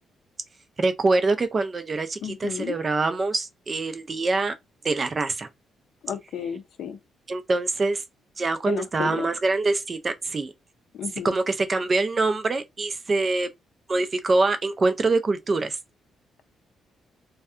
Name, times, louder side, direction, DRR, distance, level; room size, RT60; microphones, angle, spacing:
voice 1, 0.8-4.5 4.8-5.5 7.3-8.0 8.4-10.5 11.2-13.5 13.9-15.8, right 3 dB, 25° right, 0.3 m, -24 dB
voice 2, 2.2-2.8 6.0-7.0 8.7-9.3 10.9-11.4, left 8 dB, 65° left, 0.5 m, -32 dB
2.6 x 2.1 x 2.4 m
cardioid pair, 155°, 0 cm